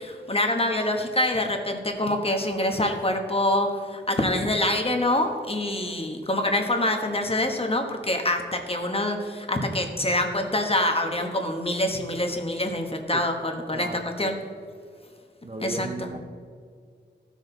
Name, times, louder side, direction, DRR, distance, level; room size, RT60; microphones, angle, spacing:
voice 1, 0.0-14.4 15.6-16.1, left 1 dB, 30° left, 4 dB, 1.3 m, -25 dB
voice 2, 13.7-14.4 15.4-16.2, right 2 dB, 35° right, 5 dB, 0.7 m, -36 dB
15.0 x 6.4 x 4.0 m, 2.1 s
wide cardioid pair, 80°, 18 cm